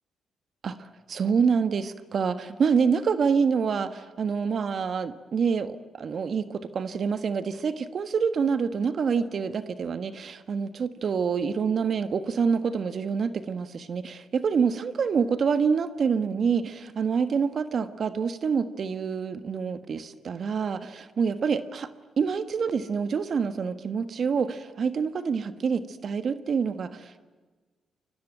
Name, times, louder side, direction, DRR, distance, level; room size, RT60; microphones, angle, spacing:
voice 1, 1.1-21.9 22.2-27.2, right 6 dB, 60° right, 10 dB, 1.4 m, -27 dB
28.5 x 22.0 x 9.2 m, 1.4 s
supercardioid pair, 50°, 0 cm